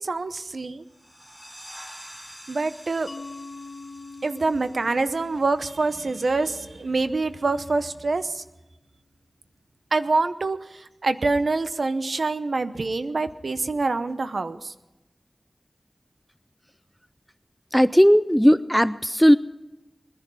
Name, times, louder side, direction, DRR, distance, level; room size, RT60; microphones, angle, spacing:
voice 1, 0.0-0.8 2.5-3.1 4.2-8.4 9.9-14.7, right 3 dB, 85° right, 11 dB, 0.8 m, -26 dB
sound 1, 0.8-6.2, equal, 20° right, 3.5 m, -47 dB
Mallet percussion, 3.1-8.4, left 3 dB, 75° left, 1.2 m, -44 dB
voice 2, 17.7-19.4, equal, 5° left, 15 dB, 0.4 m, -17 dB
20.5 x 10.5 x 5.7 m, 1.0 s
wide cardioid pair, 65°, 0 cm